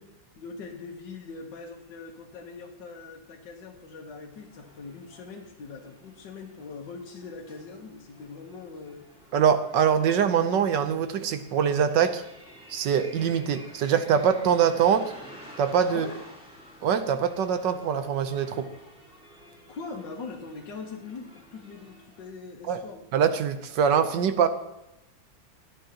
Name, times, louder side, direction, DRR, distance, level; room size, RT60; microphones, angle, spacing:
voice 1, 0.4-9.1 15.9-16.2 19.7-23.1, left 4 dB, 70° left, -1 dB, 1.8 m, -41 dB
sound 1, 4.3-22.3, equal, 5° right, 4.3 m, -51 dB
voice 2, 9.3-12.2 12.7-15.1 15.6-16.1 16.8-18.7 22.7-22.8 23.1-24.5, right 7 dB, 70° right, 9 dB, 1.4 m, -23 dB
25.5 x 9.0 x 2.9 m, 0.92 s
omnidirectional pair, 2.1 m